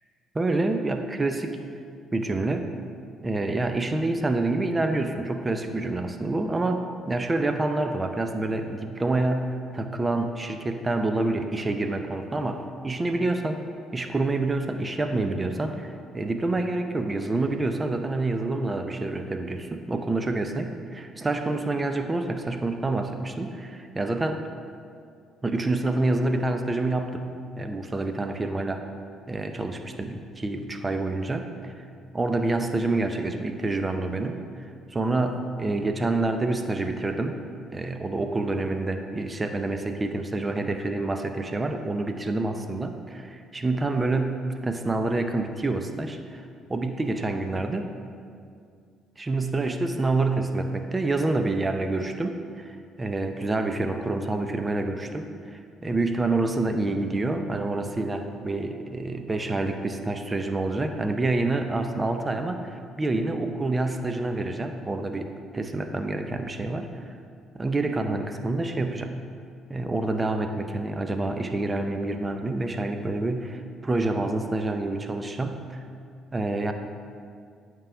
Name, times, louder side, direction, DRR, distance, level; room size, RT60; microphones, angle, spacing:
voice 1, 0.3-1.6 2.1-2.7 3.2-13.6 13.9-24.4 25.4-28.8 29.3-31.8 32.1-34.5 34.9-37.4 37.7-46.4 46.7-47.9 49.2-67.2 67.5-69.1 69.7-75.8 76.3-76.7, right 2 dB, 25° right, 6 dB, 0.6 m, -27 dB
8.9 x 3.8 x 6.8 m, 2.3 s
supercardioid pair, 65°, 0 cm